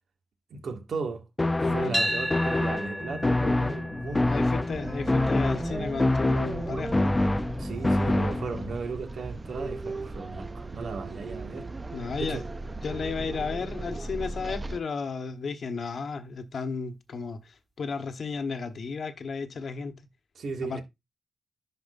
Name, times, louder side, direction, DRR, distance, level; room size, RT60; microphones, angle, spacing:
voice 1, 0.5-1.2 1.6-4.6 7.6-11.7 12.2-12.4 20.4-20.8, right 4 dB, 70° right, 2.0 m, -36 dB
sound 1, 1.4-8.8, left 2 dB, 20° left, 0.5 m, -26 dB
voice 2, 1.6-2.1 4.3-7.2 11.9-12.4 12.8-19.9 20.6-20.8, left 5 dB, 60° left, 1.1 m, -33 dB
sound 2, 1.9-10.1, equal, 5° right, 2.0 m, -37 dB
sound 3, 4.7-14.8, right 2 dB, 25° right, 0.7 m, -37 dB
11.0 x 4.9 x 2.6 m
cardioid pair, 85°, 0 cm